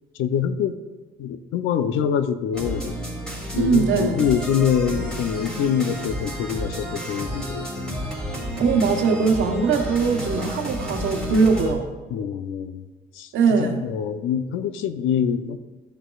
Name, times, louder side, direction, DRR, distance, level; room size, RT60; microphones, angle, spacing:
voice 1, 0.2-0.8 1.2-3.0 3.5-8.0 12.1-12.9 13.1-15.6, left 8 dB, 85° left, 10 dB, 0.6 m, -25 dB
sound 1, 2.5-11.7, equal, 5° left, 2.7 m, -31 dB
voice 2, 3.6-4.2 8.6-11.9 13.3-13.8, right 5 dB, 75° right, 4 dB, 1.1 m, -21 dB
12.5 x 6.3 x 2.4 m, 1.2 s
cardioid pair, 90°, 20 cm